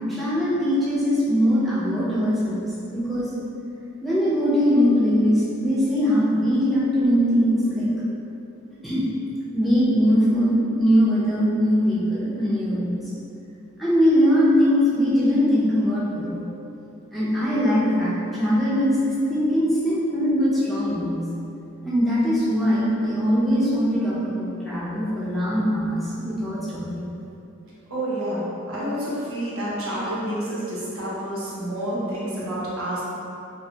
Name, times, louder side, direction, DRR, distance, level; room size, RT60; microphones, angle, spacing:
voice 1, 0.0-3.3 4.0-7.9 8.8-9.0 9.5-13.0 13.8-16.4 17.1-21.2 21.8-27.0, equal, ahead, -10 dB, 0.4 m, -21 dB
voice 2, 27.9-33.0, right 1 dB, 80° right, -8 dB, 0.8 m, -29 dB
2.5 x 2.2 x 2.7 m, 2.7 s
head